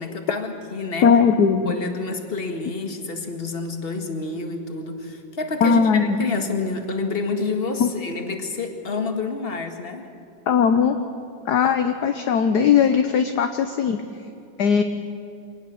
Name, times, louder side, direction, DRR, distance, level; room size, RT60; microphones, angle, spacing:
voice 1, 0.0-1.1 1.7-10.0, left 3 dB, 30° left, 5 dB, 1.9 m, -28 dB
voice 2, 1.0-1.7 5.6-6.2 7.8-7.9 10.5-11.0 11.5-14.0 14.6-14.8, left 6 dB, 60° left, 7 dB, 1.3 m, -18 dB
24.0 x 18.5 x 7.0 m, 2.6 s
omnidirectional pair, 2.2 m